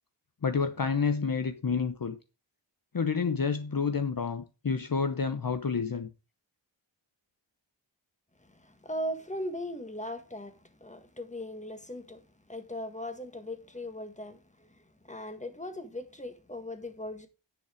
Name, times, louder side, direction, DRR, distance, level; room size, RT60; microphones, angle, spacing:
voice 1, 0.4-2.2 2.9-6.1, left 5 dB, 45° left, 0.9 m, -29 dB
voice 2, 8.4-12.2 12.5-17.3, left 1 dB, 15° left, 1.7 m, -39 dB
10.0 x 5.6 x 5.1 m
wide cardioid pair, 55°, 46 cm